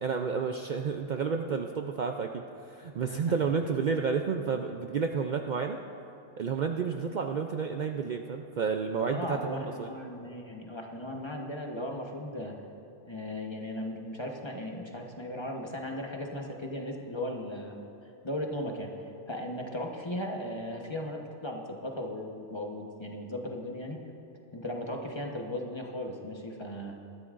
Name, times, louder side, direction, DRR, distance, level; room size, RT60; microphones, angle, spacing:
voice 1, 0.0-5.8 6.4-9.9, right 5 dB, 85° right, 4 dB, 0.4 m, -31 dB
voice 2, 9.0-12.6 13.0-17.8 18.2-24.0 24.5-26.9, left 1 dB, 20° left, 1 dB, 1.0 m, -37 dB
20.5 x 13.5 x 2.5 m, 2.7 s
omnidirectional pair, 1.4 m